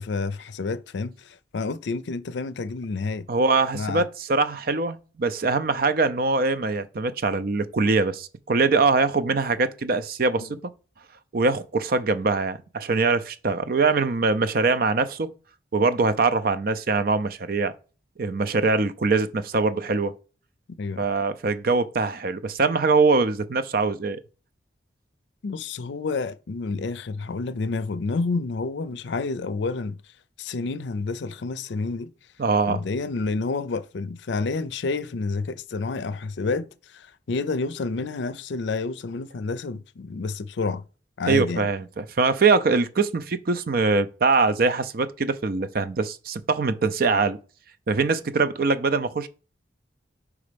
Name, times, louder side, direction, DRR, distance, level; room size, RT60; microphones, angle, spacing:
voice 1, 0.0-3.3 3.7-4.1 10.4-10.5 20.8-21.1 25.4-30.0 30.4-32.1 32.7-36.7 36.9-40.8 41.2-41.7, left 3 dB, 70° left, 0.5 m, -29 dB
voice 2, 3.3-10.6 11.3-15.3 15.7-17.7 18.2-20.1 21.0-24.2 32.4-32.8 41.3-47.4 47.9-49.3, right 4 dB, 50° right, 0.5 m, -23 dB
4.9 x 4.2 x 5.0 m
head